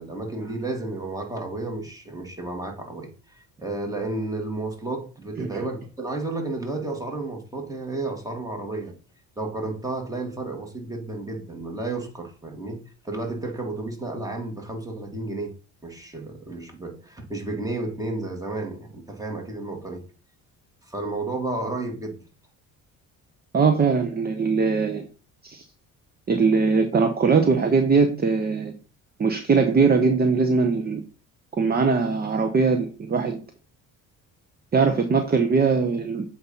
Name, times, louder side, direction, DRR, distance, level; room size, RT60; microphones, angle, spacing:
voice 1, 0.0-9.0 9.4-15.5 15.8-20.0 20.8-22.2, right 2 dB, 10° right, 1.9 m, -32 dB
voice 2, 23.5-25.1 25.4-25.6 26.3-28.7 29.2-31.0 31.5-33.4 34.7-36.2, right 4 dB, 25° right, 0.8 m, -21 dB
7.8 x 2.8 x 5.5 m
cardioid pair, 95°, 35 cm